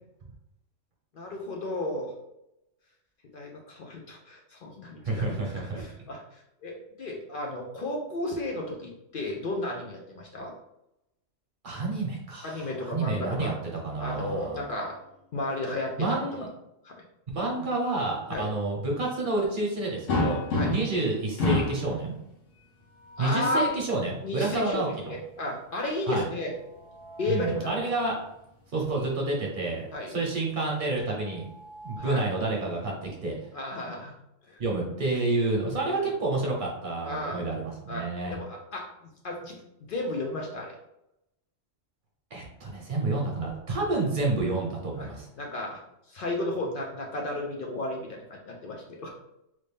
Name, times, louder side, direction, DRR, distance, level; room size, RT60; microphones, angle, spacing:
voice 1, 1.1-2.1 3.3-5.5 5.7-10.5 12.4-13.5 14.0-15.0 15.3-16.3 16.8-17.0 18.3-18.5 20.5-20.7 23.2-23.7 24.2-26.5 27.2-27.9 29.9-30.2 32.0-32.3 33.5-34.1 34.5-34.6 35.9-36.1 37.0-37.4 37.9-40.8 44.9-45.1 45.4-45.8 46.1-49.1, left 1 dB, 55° left, 0 dB, 0.6 m, -34 dB
voice 2, 5.0-5.8 11.6-13.5 13.8-14.6 16.0-16.5 17.3-20.4 20.7-22.1 23.2-25.1 26.1-26.2 27.3-28.1 28.7-31.4 31.8-33.3 34.6-38.4 42.3-45.3, right 2 dB, 45° right, -1 dB, 1.0 m, -29 dB
sound 1, 20.1-21.0 21.4-21.9 23.1-23.9 26.5-27.5 29.0-29.1 29.5-29.6 31.1-32.4, left 2 dB, 70° left, 1.2 m, -30 dB
3.2 x 2.6 x 3.4 m, 0.84 s
omnidirectional pair, 1.3 m